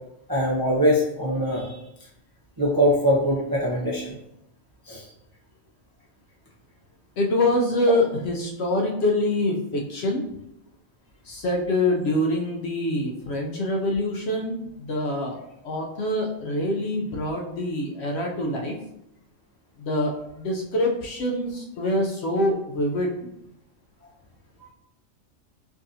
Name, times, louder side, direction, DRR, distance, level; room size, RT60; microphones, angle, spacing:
voice 1, 0.3-1.8 2.6-4.1 4.9-5.0, equal, 30° right, -5 dB, 0.4 m, -22 dB
voice 2, 7.2-10.2 11.3-15.4 15.6-18.7 19.8-23.1, left 1 dB, 65° left, 0 dB, 0.8 m, -25 dB
4.7 x 2.5 x 2.6 m, 0.81 s
omnidirectional pair, 1.4 m